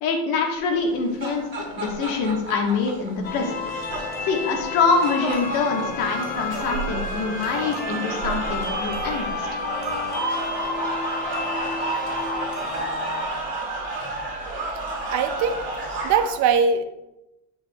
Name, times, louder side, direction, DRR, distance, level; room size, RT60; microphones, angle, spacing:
voice 1, 0.0-3.6 4.2-9.5, left 4 dB, 75° left, 1 dB, 1.6 m, -25 dB
sound 1, 0.8-16.3, right 2 dB, 30° right, 2.2 m, -31 dB
sound 2, 3.2-13.3, left 3 dB, 25° left, 0.9 m, -31 dB
voice 2, 15.1-15.6 16.0-16.8, right 6 dB, 50° right, 9 dB, 0.6 m, -21 dB
8.3 x 6.1 x 2.3 m, 0.93 s
cardioid pair, 140°, 37 cm